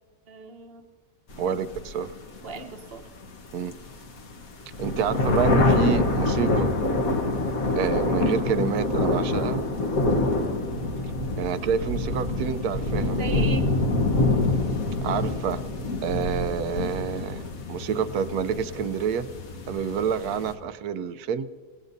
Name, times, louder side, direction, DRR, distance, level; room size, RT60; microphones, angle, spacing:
voice 1, 0.3-0.8 2.4-3.1 13.1-13.7, right 2 dB, 40° right, 5 dB, 1.1 m, -37 dB
sound 1, 1.3-20.5, left 2 dB, 60° left, 1.6 m, -26 dB
voice 2, 1.4-2.1 3.5-3.8 4.8-6.7 7.8-9.6 11.4-13.4 15.0-15.6 16.0-19.3 19.7-21.5, right 7 dB, 70° right, 13 dB, 1.1 m, -28 dB
29.0 x 18.0 x 2.7 m, 1.5 s
omnidirectional pair, 1.8 m